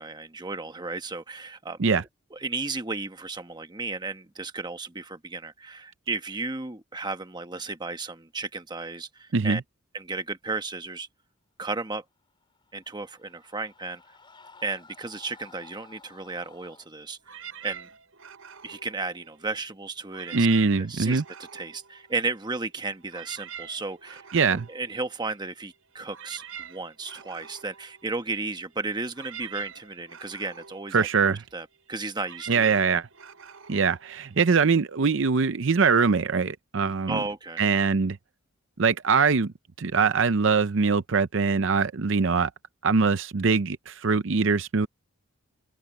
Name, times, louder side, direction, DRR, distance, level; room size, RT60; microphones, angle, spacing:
voice 1, 0.0-1.8 2.3-9.6 9.9-11.1 11.6-12.0 12.7-14.0 14.6-17.4 17.6-17.9 18.6-20.4 20.8-21.2 21.5-32.7 37.1-37.6, right 3 dB, 20° right, 1.1 m, -34 dB
sound 1, 12.4-16.9, left 4 dB, 25° left, 5.0 m, -54 dB
sound 2, 17.2-19.7 20.0-22.6 22.9-34.8, right 8 dB, 75° right, 6.2 m, -45 dB
voice 2, 20.3-21.2 24.3-24.7 30.9-31.4 32.5-33.1 33.7-37.2 37.6-38.2 38.8-42.5 42.8-44.9, right 5 dB, 60° right, 0.6 m, -23 dB
head